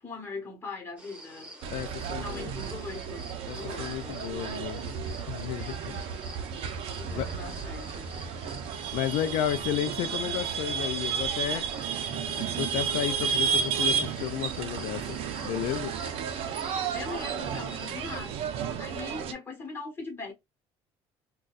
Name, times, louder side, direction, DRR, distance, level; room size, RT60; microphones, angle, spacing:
voice 1, 0.0-1.5 2.1-4.1 6.9-8.1 16.9-18.5 18.8-20.3, left 4 dB, 20° left, 1.3 m, -40 dB
sound 1, 1.0-18.2, right 1 dB, 10° right, 1.9 m, -48 dB
sound 2, 1.6-19.3, right 7 dB, 60° right, 0.6 m, -32 dB
voice 2, 1.7-2.5 3.5-4.9 5.3-6.0 7.1-7.3 8.9-11.7 12.2-15.0 15.4-15.9, left 11 dB, 75° left, 0.4 m, -32 dB
3.8 x 2.3 x 2.4 m
cardioid pair, 140°, 11 cm